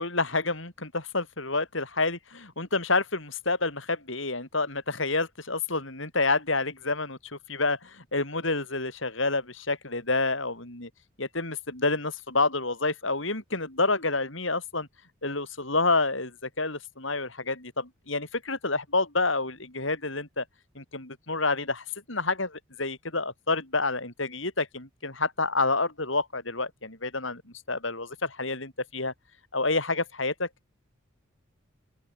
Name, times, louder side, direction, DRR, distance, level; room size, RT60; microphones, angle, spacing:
voice 1, 0.0-10.9 11.2-14.9 15.2-20.4 20.7-27.4 27.7-29.1 29.5-30.5, left 3 dB, 70° left, 6.8 m, -28 dB
open air
head